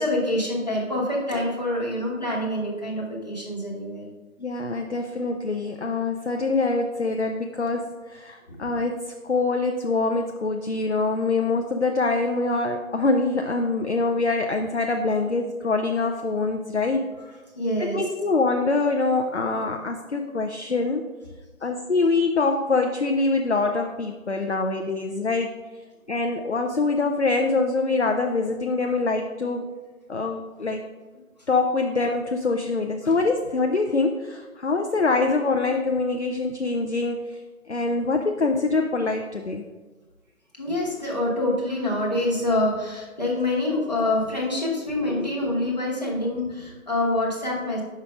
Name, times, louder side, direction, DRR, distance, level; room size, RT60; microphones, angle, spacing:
voice 1, 0.0-4.1 8.5-8.7 17.5-18.0 33.0-33.2 40.6-47.8, left 1 dB, 30° left, -3 dB, 1.0 m, -26 dB
voice 2, 4.4-17.0 17.8-21.1 21.6-25.5 26.1-29.6 30.1-30.8 31.5-37.2 37.7-39.6, left 3 dB, 55° left, 4 dB, 0.5 m, -24 dB
5.7 x 4.4 x 5.0 m, 1.3 s
figure-of-eight pair, 175°, 42 cm